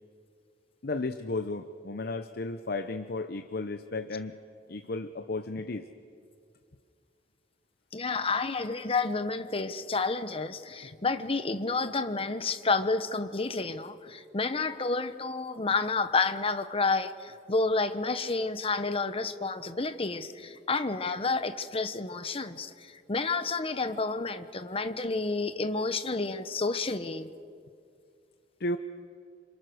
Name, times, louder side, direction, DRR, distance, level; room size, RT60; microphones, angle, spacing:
voice 1, 0.8-4.4 4.7-5.9 28.6-28.8, left 2 dB, 60° left, 9 dB, 0.8 m, -34 dB
voice 2, 7.9-27.3, left 3 dB, 35° left, 10 dB, 1.2 m, -30 dB
28.5 x 26.5 x 6.4 m, 2.3 s
head